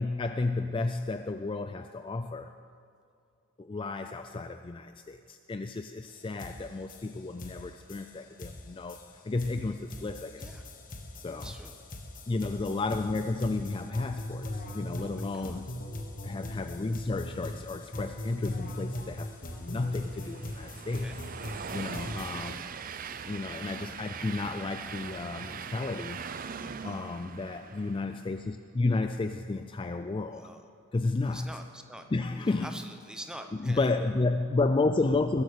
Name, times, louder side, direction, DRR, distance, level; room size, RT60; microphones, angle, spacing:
voice 1, 0.0-2.5 3.6-10.6 11.1-11.5 12.3-15.7 16.2-19.3 19.6-21.2 21.7-22.6 23.2-26.2 26.8-30.5 30.9-31.5 32.1-32.8 33.6-35.4, left 3 dB, 25° left, 8 dB, 0.3 m, -32 dB
sound 1, 6.1-6.2 6.4-22.3, left 1 dB, 40° left, 1.3 m, -41 dB
voice 2, 11.4-11.8 14.9-15.6 20.8-21.2 26.8-27.1 30.3-30.7 31.3-32.1 32.4-33.9, right 1 dB, 5° right, 5 dB, 0.9 m, -46 dB
Train, 19.0-28.4, right 6 dB, 40° right, 0.5 m, -41 dB
21.0 x 8.3 x 6.6 m, 2.4 s
head